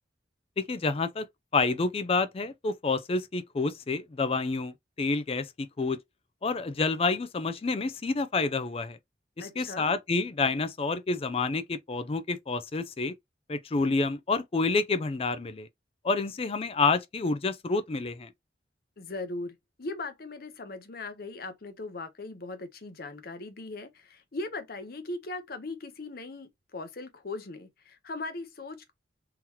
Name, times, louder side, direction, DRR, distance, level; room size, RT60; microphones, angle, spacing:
voice 1, 0.6-1.3 1.5-6.0 6.4-9.0 9.4-13.1 13.5-15.7 16.0-18.3, left 3 dB, 30° left, 0.4 m, -28 dB
voice 2, 9.4-10.0 19.0-28.9, left 2 dB, 55° left, 0.8 m, -39 dB
3.8 x 2.9 x 2.9 m
head